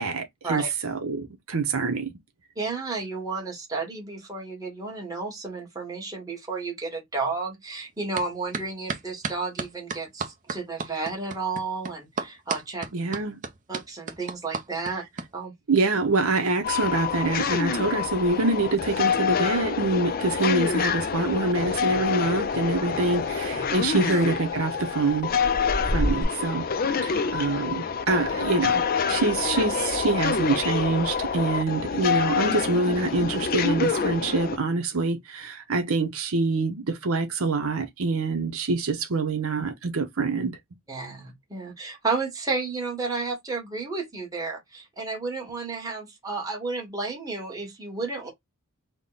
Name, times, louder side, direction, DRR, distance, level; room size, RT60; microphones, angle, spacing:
voice 1, 0.0-2.1 12.9-13.4 15.7-25.3 25.8-26.6 27.0-28.8 29.1-40.6, right 3 dB, 75° right, 0.8 m, -25 dB
voice 2, 2.5-12.9 13.7-15.0 15.3-15.5 23.9-24.0 27.1-27.2 40.9-48.3, right 3 dB, 15° right, 1.3 m, -32 dB
sound 1, 8.2-8.3 8.5-15.3, right 4 dB, 35° right, 0.6 m, -32 dB
sound 2, 16.6-34.6, left 6 dB, 40° left, 0.4 m, -27 dB
sound 3, 18.2-19.6 19.9-20.3 20.6-20.7 21.2-26.2, equal, 15° left, 0.9 m, -35 dB
3.6 x 2.2 x 3.8 m
head